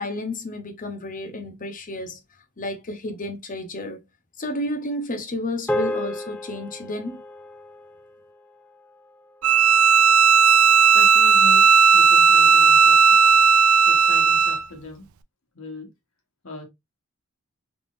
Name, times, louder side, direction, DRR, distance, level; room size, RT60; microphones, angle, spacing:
voice 1, 0.0-2.2 2.6-4.0 4.4-7.2, left 1 dB, 40° left, 0.8 m, -31 dB
sound 1, 5.7-10.2, left 1 dB, 5° left, 0.4 m, -33 dB
Bowed string instrument, 9.4-14.7, right 6 dB, 80° right, 0.4 m, -15 dB
voice 2, 10.9-13.0 13.8-15.1 15.5-15.9 16.4-16.6, left 1 dB, 75° left, 1.4 m, -38 dB
3.6 x 3.4 x 2.5 m
head